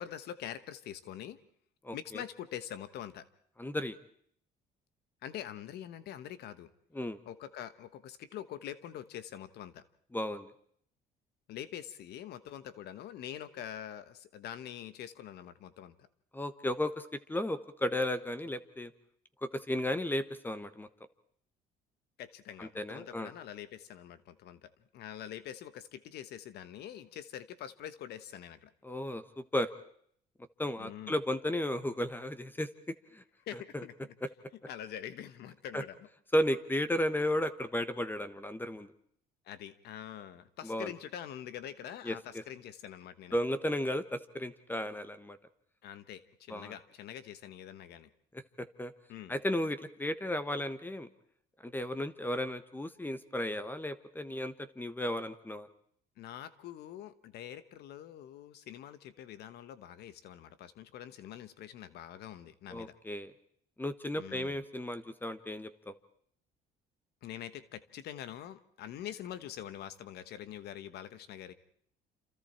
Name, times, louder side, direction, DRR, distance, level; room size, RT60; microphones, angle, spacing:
voice 1, 0.0-1.4 1.9-3.2 5.2-6.7 7.2-9.8 11.5-16.1 22.2-28.7 30.8-31.2 33.4-34.1 34.7-36.1 39.4-43.4 45.8-48.1 49.1-49.4 56.2-62.9 64.2-64.6 67.2-71.5, left 10 dB, 75° left, 13 dB, 1.3 m, -45 dB
voice 2, 1.8-2.2 3.6-4.0 6.9-7.2 10.1-10.5 16.3-18.9 19.4-20.9 22.6-23.3 28.8-29.7 30.6-32.7 33.1-33.2 33.7-33.8 35.7-35.8 36.3-38.9 40.6-40.9 42.0-42.2 43.3-45.4 46.5-46.7 48.6-48.9 49.3-51.1 51.6-55.7 62.7-63.3 63.8-65.9, left 1 dB, 10° left, 12 dB, 1.3 m, -34 dB
28.5 x 27.5 x 4.4 m, 0.64 s
cardioid pair, 110°, 17 cm